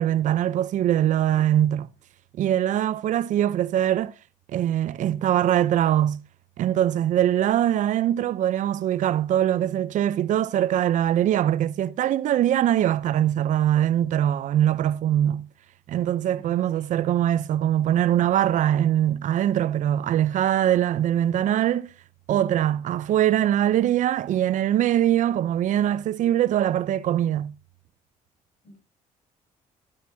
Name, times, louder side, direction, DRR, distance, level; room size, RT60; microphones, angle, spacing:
voice 1, 0.0-1.9 2.4-4.1 4.5-6.2 6.6-15.5 15.9-21.9 22.3-27.5, right 11 dB, 70° right, 0.6 m, -22 dB
voice 2, 16.3-16.9 28.6-28.8, left 2 dB, 65° left, 7.5 m, -49 dB
13.0 x 12.5 x 2.7 m
cardioid pair, 155°, 14 cm